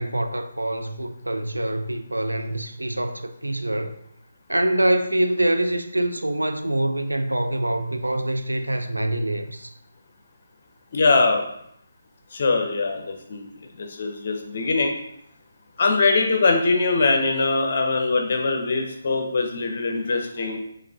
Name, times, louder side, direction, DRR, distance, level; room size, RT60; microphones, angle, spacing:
voice 1, 0.0-4.0 4.5-9.7, right 1 dB, 80° right, 0.4 m, -25 dB
voice 2, 10.9-11.4 12.3-13.5 13.8-14.9 15.8-20.6, left 3 dB, 45° left, 0.7 m, -22 dB
4.7 x 2.5 x 3.5 m
figure-of-eight pair, 145°, 0 cm